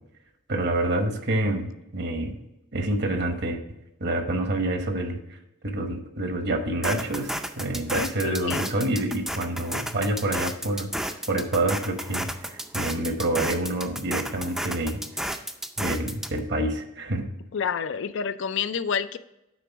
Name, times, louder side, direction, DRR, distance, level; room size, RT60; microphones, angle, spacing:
voice 1, 0.5-1.7 1.9-2.3 2.7-3.6 4.0-5.4 5.6-15.0 15.8-17.2, right 1 dB, 55° right, 6 dB, 1.1 m, -27 dB
sound 1, 6.8-16.4, right 1 dB, ahead, 0.4 m, -32 dB
voice 2, 7.9-8.7 17.5-19.2, left 7 dB, 65° left, 13 dB, 0.4 m, -28 dB
9.4 x 3.8 x 4.6 m, 0.91 s
head